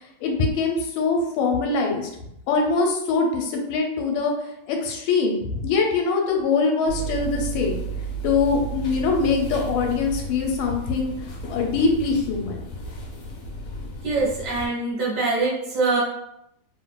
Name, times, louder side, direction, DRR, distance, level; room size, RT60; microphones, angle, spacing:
voice 1, 0.2-2.1 2.5-4.3 4.7-7.8 8.2-11.1 11.5-12.6, left 4 dB, 85° left, 1 dB, 1.4 m, -23 dB
sound 1, 6.9-14.7, right 3 dB, 60° left, 1.0 m, -33 dB
voice 2, 14.0-16.0, right 3 dB, 30° right, -5 dB, 0.8 m, -24 dB
3.0 x 2.7 x 2.2 m, 0.80 s
omnidirectional pair, 2.2 m